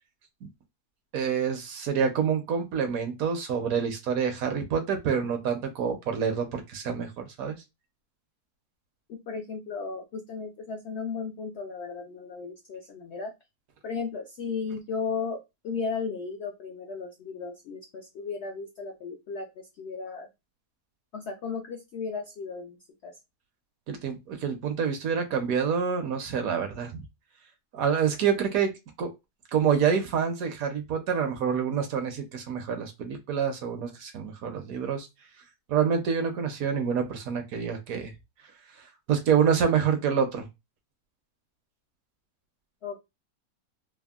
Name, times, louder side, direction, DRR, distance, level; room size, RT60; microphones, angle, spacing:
voice 1, 1.1-7.6 23.9-27.0 27.7-28.7 29.0-29.1 29.5-35.1 35.7-38.1 39.1-40.5, right 7 dB, 70° right, 1.0 m, -27 dB
voice 2, 9.1-13.3 13.8-20.3 21.1-23.2 42.8-43.0, left 5 dB, 75° left, 0.6 m, -35 dB
3.5 x 2.0 x 2.3 m
omnidirectional pair, 1.7 m